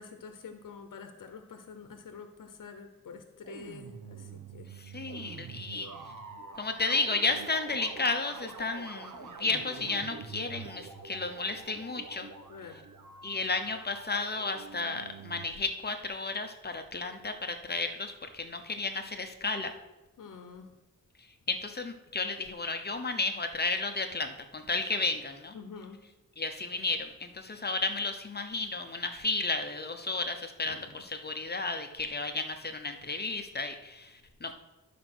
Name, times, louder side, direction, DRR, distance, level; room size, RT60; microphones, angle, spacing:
voice 1, 0.0-4.7 12.5-12.8 20.2-20.8 25.5-26.0 30.6-31.0, left 5 dB, 75° left, 7 dB, 0.9 m, -47 dB
sound 1, 3.4-15.5, right 5 dB, 80° right, 1.0 m, -46 dB
voice 2, 4.7-5.9 6.6-12.3 13.2-19.7 21.2-25.5 26.4-34.5, left 3 dB, 30° left, 7 dB, 0.8 m, -33 dB
11.0 x 5.1 x 6.1 m, 1.0 s
wide cardioid pair, 120°, 32 cm